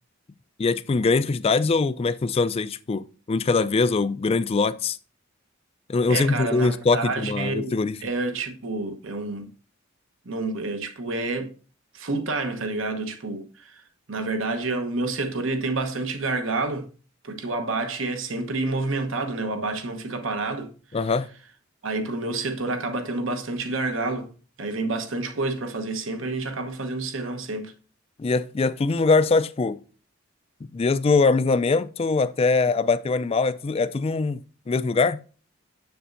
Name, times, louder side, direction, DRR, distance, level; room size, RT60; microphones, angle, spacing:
voice 1, 0.6-5.0 5.9-8.0 20.9-21.3 28.2-29.8 30.7-35.2, left 4 dB, 30° left, 0.3 m, -22 dB
voice 2, 6.1-7.8 8.0-9.5 10.2-11.5 11.9-13.8 14.1-16.9 17.2-20.7 21.8-24.3 24.6-27.7, right 3 dB, 70° right, 1.0 m, -28 dB
7.1 x 7.0 x 2.5 m
head